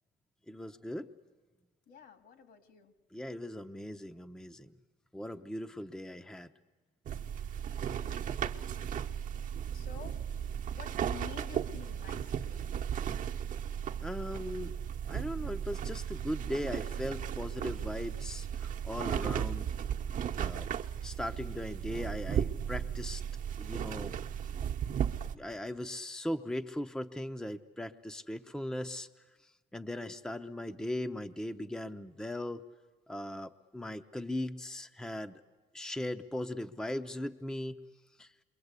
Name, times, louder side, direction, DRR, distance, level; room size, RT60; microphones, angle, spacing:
voice 1, 0.5-1.1 3.1-4.7 5.1-6.5 14.0-14.8 15.1-19.7 20.4-20.7 21.0-23.2 23.6-24.2 25.3-29.1 29.4-32.6 33.1-35.4 35.7-37.8 38.2-38.3, left 1 dB, 5° left, 7 dB, 0.7 m, -39 dB
voice 2, 1.9-2.9 9.7-12.7, left 6 dB, 70° left, 8 dB, 2.8 m, -50 dB
sound 1, 7.1-25.3, right 8 dB, 55° right, 1.1 m, -36 dB
28.0 x 23.0 x 8.2 m, 1.4 s
cardioid pair, 110°, 17 cm